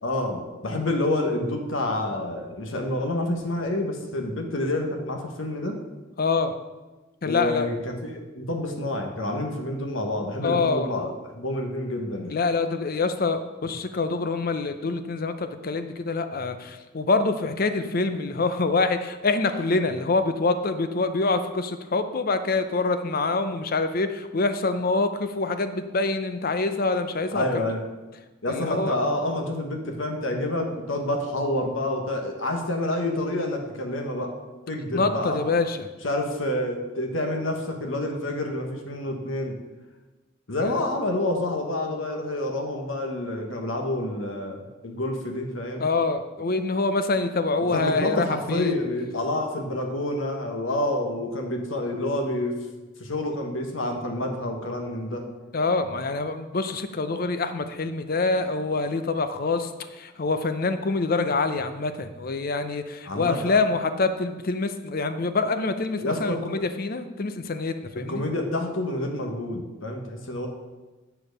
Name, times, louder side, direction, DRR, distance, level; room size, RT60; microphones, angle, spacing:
voice 1, 0.0-5.8 7.2-12.4 27.3-27.9 28.4-34.3 34.7-35.4 36.0-39.6 40.5-45.9 47.7-52.6 53.0-55.3 63.0-63.6 66.0-66.4 67.9-70.5, left 1 dB, 80° left, 3 dB, 1.4 m, -28 dB
voice 2, 6.2-6.6 7.2-7.7 10.4-10.9 12.3-27.6 28.5-28.9 34.9-35.9 40.6-40.8 45.8-48.7 55.5-68.2, left 3 dB, 50° left, 9 dB, 0.6 m, -25 dB
8.7 x 4.6 x 6.6 m, 1.2 s
head